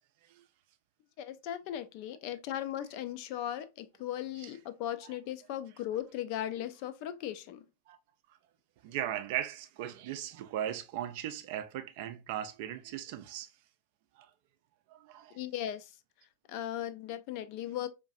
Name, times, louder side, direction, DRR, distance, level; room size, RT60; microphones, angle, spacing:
voice 1, 1.2-7.6 15.3-15.9 16.5-17.9, left 11 dB, 45° left, 0.4 m, -37 dB
voice 2, 8.8-13.5 14.2-14.3 14.9-15.4, right 11 dB, 50° right, 0.4 m, -38 dB
4.5 x 2.5 x 2.5 m
figure-of-eight pair, 90°, 0 cm